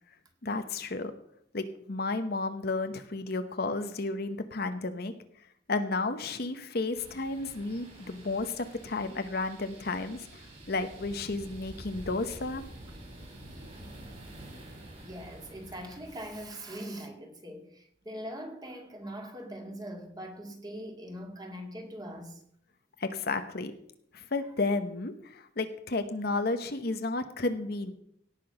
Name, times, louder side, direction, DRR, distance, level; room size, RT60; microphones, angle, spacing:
voice 1, 0.4-1.1 1.5-5.1 5.7-10.3 10.7-12.6 23.0-23.7 24.1-27.9, left 3 dB, 55° left, 0.9 m, -32 dB
sound 1, 6.9-16.5, right 1 dB, 35° right, 4.8 m, -48 dB
voice 2, 15.0-22.4, equal, 20° right, 2.1 m, -42 dB
17.5 x 6.1 x 5.8 m
head